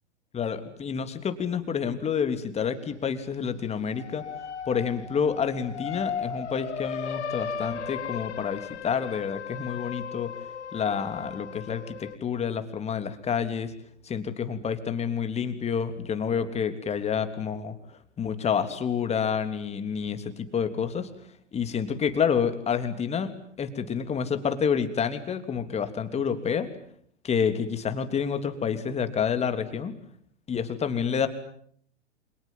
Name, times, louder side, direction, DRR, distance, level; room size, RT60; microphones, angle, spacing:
voice 1, 0.3-4.3 4.7-10.3 10.7-13.7 14.0-17.8 18.2-21.1 21.5-23.3 23.6-26.7 27.2-29.9 30.5-31.3, left 7 dB, 15° left, 9 dB, 3.3 m, -28 dB
sound 1, 3.9-12.2, left 7 dB, 70° left, 3.0 m, -36 dB
29.0 x 27.0 x 7.5 m, 0.64 s
figure-of-eight pair, 110°, 36 cm